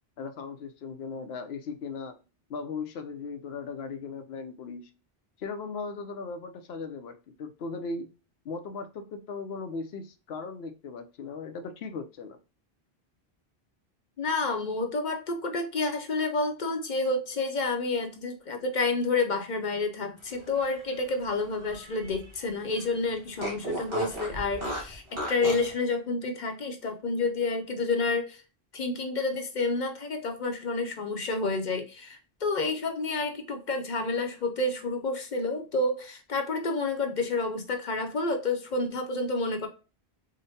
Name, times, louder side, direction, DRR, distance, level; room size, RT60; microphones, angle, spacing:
voice 1, 0.2-2.2 2.5-4.9 5.4-8.1 8.4-12.4, left 4 dB, 85° left, 8 dB, 0.9 m, -38 dB
voice 2, 14.2-25.0 25.3-28.4 28.7-39.7, left 3 dB, 55° left, 5 dB, 0.7 m, -29 dB
Fart, 20.4-22.4 22.7-22.8 23.4-25.7, right 1 dB, 65° right, 2.0 m, -36 dB
5.1 x 2.1 x 2.7 m, 0.34 s
omnidirectional pair, 1.0 m